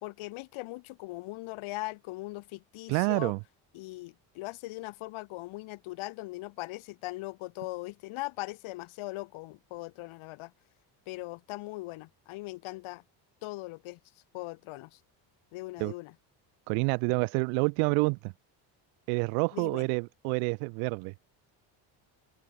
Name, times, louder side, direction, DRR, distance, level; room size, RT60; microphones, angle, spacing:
voice 1, 0.0-3.3 3.7-10.5 11.1-13.0 13.4-14.0 14.3-15.0 15.5-16.1 19.5-19.9, left 20 dB, 70° left, 2.4 m, -40 dB
voice 2, 2.9-3.4 15.8-15.9 16.7-18.3 19.1-21.1, right 40 dB or more, 80° right, 0.8 m, -28 dB
supercardioid pair, 70°, 50 cm